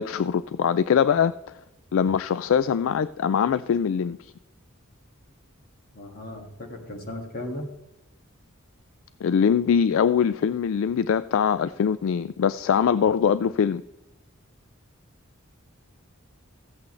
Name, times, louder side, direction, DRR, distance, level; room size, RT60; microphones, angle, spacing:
voice 1, 0.0-1.3 1.9-4.3 9.2-13.8, left 7 dB, 65° left, 0.3 m, -22 dB
voice 2, 5.9-7.7, left 1 dB, 45° left, 1.9 m, -36 dB
15.0 x 8.3 x 3.2 m
head